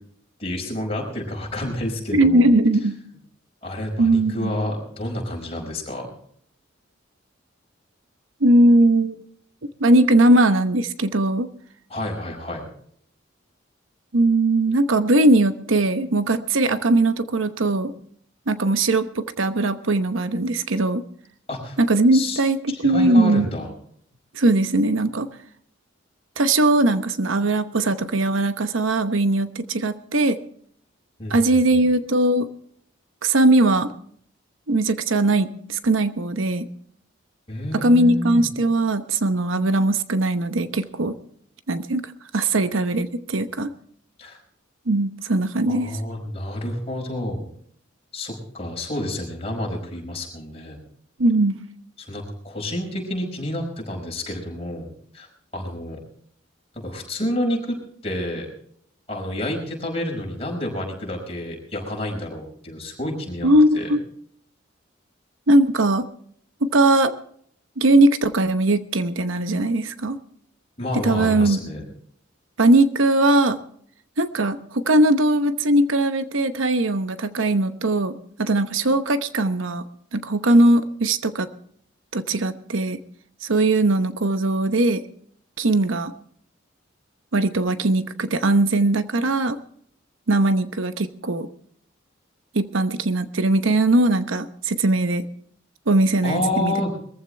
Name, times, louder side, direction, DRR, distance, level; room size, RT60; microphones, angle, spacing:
voice 1, 0.4-2.5 3.6-6.1 11.9-12.6 21.5-21.8 22.1-22.4 22.7-23.7 31.2-31.8 37.5-38.4 44.2-44.4 45.7-47.4 48.1-50.8 52.0-54.9 55.1-55.3 55.5-56.0 56.7-57.8 58.0-58.5 59.1-63.5 63.7-64.0 70.8-71.8 96.2-96.9, left 1 dB, 30° left, 0 dB, 5.4 m, -29 dB
voice 2, 2.1-3.0 4.0-4.5 8.4-9.1 9.8-11.5 14.1-17.9 18.5-21.0 21.8-23.5 24.3-25.3 26.4-30.4 31.3-32.5 33.2-33.9 34.7-36.7 37.7-41.2 41.7-43.7 44.9-46.0 51.2-51.6 63.4-64.0 65.5-66.1 66.6-67.1 67.8-70.2 70.9-71.6 72.6-73.6 74.2-79.8 80.1-81.5 82.1-83.0 83.4-85.0 85.6-86.1 87.3-89.6 90.3-91.5 92.5-95.2 95.9-96.9, right 2 dB, 75° right, 11 dB, 0.9 m, -20 dB
22.0 x 14.5 x 3.3 m, 0.63 s
head